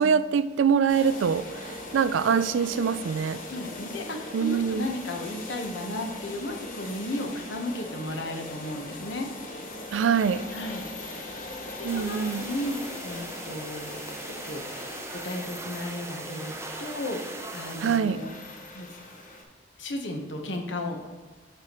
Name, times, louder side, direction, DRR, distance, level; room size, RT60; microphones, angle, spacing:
voice 1, 0.0-3.4 4.3-4.9 9.9-10.5 11.8-12.5 17.8-18.2, right 6 dB, 90° right, 15 dB, 0.4 m, -24 dB
sound 1, 0.9-19.4, left 2 dB, 45° left, 1.3 m, -40 dB
voice 2, 3.5-9.3 10.5-10.8 11.8-14.1 14.5-14.9 15.2-16.5 16.8-18.3 18.7-19.0 19.8-21.0, left 1 dB, 75° left, 3 dB, 1.1 m, -34 dB
sound 2, 11.9-18.0, right 3 dB, 15° right, 0.5 m, -40 dB
7.6 x 7.0 x 3.0 m, 1.5 s
head